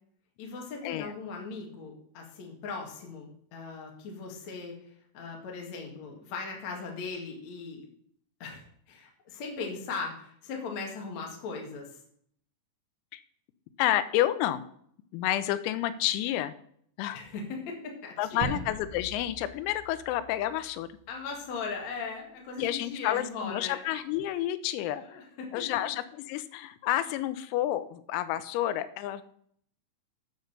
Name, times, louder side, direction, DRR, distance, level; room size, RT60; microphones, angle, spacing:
voice 1, 0.4-7.9 8.4-12.0 17.1-18.6 21.1-23.9 24.9-25.7, left 4 dB, 50° left, 0 dB, 2.2 m, -39 dB
voice 2, 13.8-14.6 15.1-16.5 17.0-17.2 18.2-20.9 22.6-25.0 25.5-29.2, left 13 dB, 90° left, 12 dB, 3.5 m, -30 dB
sound 1, 18.4-21.2, right 4 dB, 70° right, 2.6 m, -41 dB
9.3 x 6.6 x 6.6 m, 0.65 s
omnidirectional pair, 6.0 m